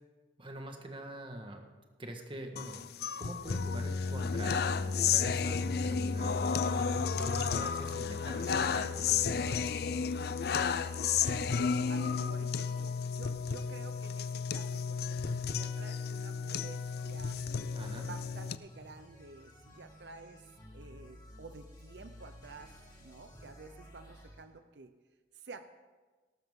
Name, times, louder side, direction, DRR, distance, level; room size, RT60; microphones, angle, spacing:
voice 1, 0.4-1.6 2.0-2.9 3.2-9.9 17.7-18.1, right 1 dB, 30° right, 4 dB, 1.4 m, -44 dB
sound 1, 2.6-18.6, left 6 dB, 60° left, 0.5 m, -32 dB
sound 2, 7.1-7.8 8.6-9.1 10.6-12.9, right 3 dB, 55° right, 1.0 m, -52 dB
voice 2, 11.6-17.4 18.1-20.5 20.7-22.7 23.0-24.9 25.3-25.7, right 4 dB, 80° right, 9 dB, 0.7 m, -51 dB
sound 3, 16.9-24.4, equal, 25° left, 2.2 m, -54 dB
19.0 x 11.5 x 3.7 m, 1.3 s
head